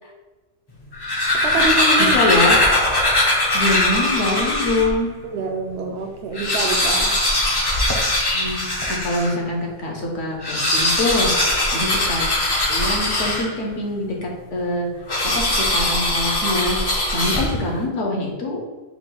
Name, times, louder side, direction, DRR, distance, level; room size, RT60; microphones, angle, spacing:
sound 1, 0.8-5.0 5.5-5.6 5.8-5.9 6.2-9.4 10.3-13.8 15.1-17.8, left 1 dB, 30° left, 0.5 m, -20 dB
voice 1, 1.3-2.2 5.2-7.2, right 3 dB, 60° right, 4 dB, 0.8 m, -26 dB
voice 2, 2.0-2.6 3.5-5.1 8.3-11.3 11.7-12.3 12.7-14.9 15.3-16.8 17.1-18.6, left 1 dB, 65° left, 0 dB, 1.2 m, -24 dB
4.8 x 2.2 x 3.9 m, 1.2 s
omnidirectional pair, 1.4 m